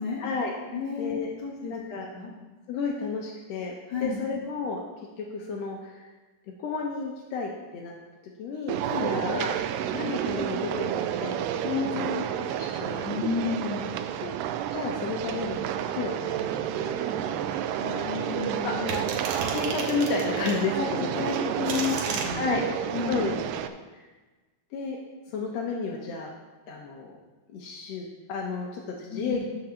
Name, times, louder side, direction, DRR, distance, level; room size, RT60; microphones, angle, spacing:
voice 1, 0.2-0.5 1.0-1.3 1.7-2.1 2.7-3.7 4.0-4.8 5.2-6.1 6.6-8.0 8.2-9.7 9.9-11.5 11.8-12.1 12.5-13.1 14.2-14.3 14.7-18.1 18.6-18.7 19.5-21.4 21.7-21.8 22.3-22.6 23.1-24.1 24.7-25.0 25.3-26.3 26.7-27.2 27.5-29.4, left 4 dB, 75° left, -1 dB, 1.5 m, -32 dB
voice 2, 0.7-1.7 2.1-2.3 3.9-4.2 8.8-9.2 11.6-12.3 13.0-13.9 17.7-19.0 20.7-22.7 22.9-23.3 29.1-29.4, left 5 dB, 30° left, -7 dB, 3.1 m, -32 dB
sound 1, 8.7-23.7, right 10 dB, 80° right, 2.0 m, -30 dB
sound 2, 18.9-20.6 21.3-22.3, right 4 dB, 65° right, 2.0 m, -34 dB
11.5 x 4.2 x 6.9 m, 1.2 s
omnidirectional pair, 4.2 m